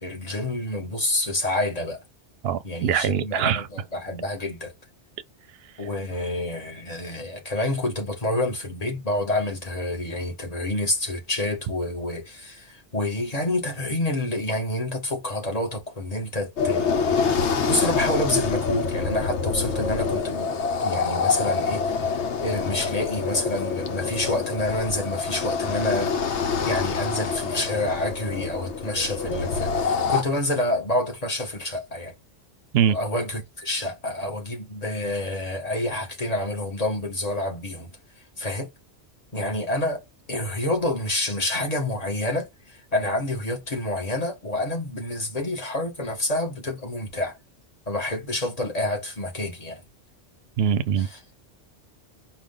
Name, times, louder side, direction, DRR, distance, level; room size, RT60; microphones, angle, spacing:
voice 1, 0.0-2.0 2.6-4.7 5.8-20.5 20.8-32.1 32.9-37.9 38.4-38.7 39.3-40.0 40.3-47.3 47.9-49.8 51.0-51.2, left 1 dB, 35° left, 1.4 m, -28 dB
voice 2, 2.4-3.7 32.7-33.0 50.6-51.1, right 8 dB, 65° right, 0.7 m, -22 dB
sound 1, 16.6-30.2, left 5 dB, 80° left, 1.0 m, -26 dB
4.9 x 2.4 x 3.7 m
omnidirectional pair, 1.2 m